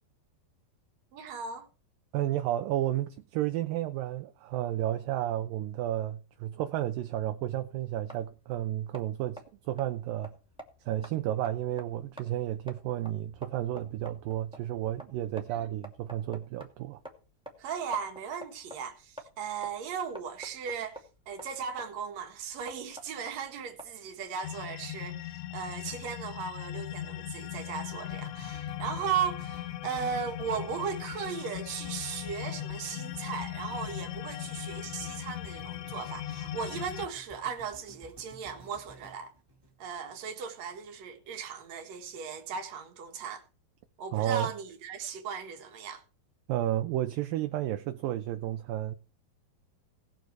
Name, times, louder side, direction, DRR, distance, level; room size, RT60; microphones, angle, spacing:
voice 1, 1.1-1.7 15.5-15.7 17.6-39.3 39.8-43.4 44.0-46.0, right 7 dB, 55° right, 2.5 m, -37 dB
voice 2, 2.1-9.4 9.7-10.3 10.9-17.0 44.1-44.5 46.5-48.9, right 13 dB, 75° right, 2.3 m, -32 dB
sound 1, 7.6-24.3, equal, ahead, 1.2 m, -50 dB
sound 2, 24.4-37.1, left 13 dB, 80° left, 1.7 m, -39 dB
sound 3, 28.1-40.3 40.8-40.9, right 1 dB, 30° right, 0.4 m, -54 dB
18.5 x 6.8 x 4.6 m
omnidirectional pair, 4.4 m